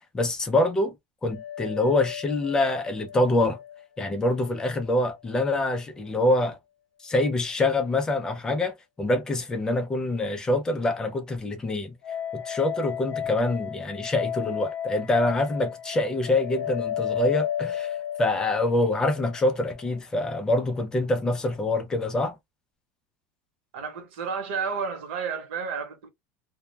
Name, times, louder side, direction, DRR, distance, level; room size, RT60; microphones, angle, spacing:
voice 1, 0.1-0.9 1.2-3.6 4.0-6.6 7.0-11.9 12.3-22.4, left 2 dB, 10° left, 0.4 m, -25 dB
sound 1, 1.3-4.5 4.7-4.8 12.0-20.0, left 9 dB, 65° left, 0.5 m, -34 dB
voice 2, 23.7-26.1, right 5 dB, 75° right, 1.0 m, -31 dB
2.1 x 2.0 x 3.1 m
cardioid pair, 175°, 6 cm